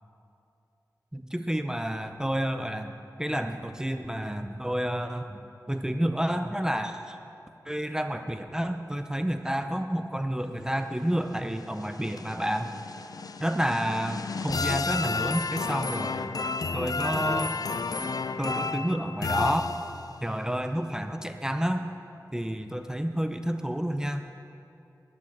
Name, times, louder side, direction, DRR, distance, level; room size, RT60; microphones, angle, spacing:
voice 1, 1.1-5.4 5.7-7.2 7.6-12.7 13.4-16.4 16.7-17.6 18.4-19.7 20.2-21.8 22.3-24.3, equal, 10° right, 7 dB, 0.5 m, -30 dB
sound 1, 11.3-20.2, left 4 dB, 60° left, 0.4 m, -32 dB
11.5 x 6.2 x 9.0 m, 2.6 s
wide cardioid pair, 80°, 7 cm